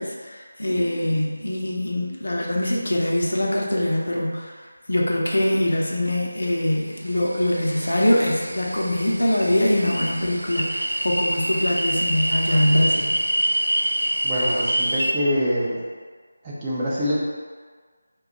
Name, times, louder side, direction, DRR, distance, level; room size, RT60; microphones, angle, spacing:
voice 1, 0.0-4.5 4.9-13.1, left 1 dB, 65° left, -2 dB, 0.6 m, -23 dB
sound 1, 7.0-15.1, right 1 dB, 80° right, 0.3 m, -26 dB
voice 2, 14.2-15.8 16.4-17.2, equal, 15° right, -8 dB, 0.5 m, -24 dB
2.7 x 2.3 x 3.7 m, 1.5 s
figure-of-eight pair, 160°, 0 cm